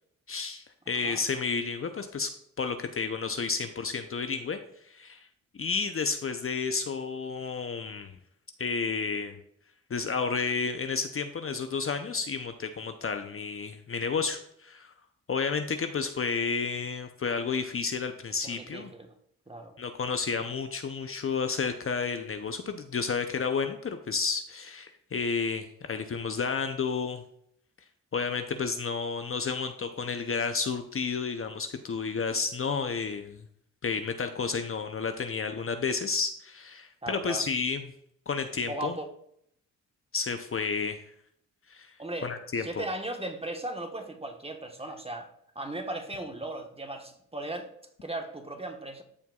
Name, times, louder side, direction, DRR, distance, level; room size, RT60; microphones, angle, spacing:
voice 1, 0.3-2.3 2.6-4.6 4.8-5.3 5.5-8.2 8.6-9.4 9.9-14.9 15.3-18.9 19.8-27.2 28.1-33.4 33.8-37.9 38.3-39.0 40.1-41.0 41.7-41.9 42.2-42.8, left 5 dB, 40° left, 7 dB, 0.7 m, -31 dB
voice 2, 0.9-1.2 18.4-19.1 19.5-19.7 37.0-37.4 38.7-39.1 42.0-42.3 42.6-45.3 45.5-47.7 48.0-49.0, right 1 dB, 15° right, 4 dB, 1.3 m, -37 dB
13.5 x 4.5 x 2.4 m, 0.71 s
supercardioid pair, 50°, 34 cm